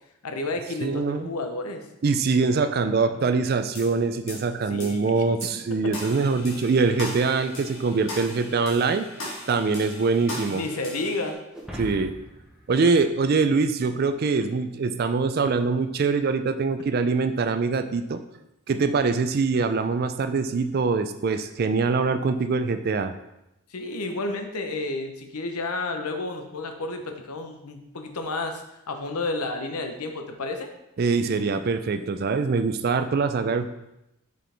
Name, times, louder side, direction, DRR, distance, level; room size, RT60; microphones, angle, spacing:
voice 1, 0.2-1.9 3.1-3.2 4.7-5.9 10.5-11.4 14.3-14.6 23.7-30.7, left 2 dB, 90° left, 5 dB, 0.8 m, -31 dB
voice 2, 0.8-1.3 2.0-9.1 9.5-10.6 11.8-12.1 12.7-18.2 18.7-23.1 31.0-33.7, right 4 dB, 45° right, 9 dB, 0.3 m, -23 dB
sound 1, 3.7-3.9 4.3-4.4 4.8-4.9 5.4-5.5 5.9-11.3, left 1 dB, 60° left, 2.1 m, -38 dB
sound 2, 11.5-14.1, equal, 5° right, 0.8 m, -41 dB
6.2 x 4.6 x 3.4 m, 0.88 s
head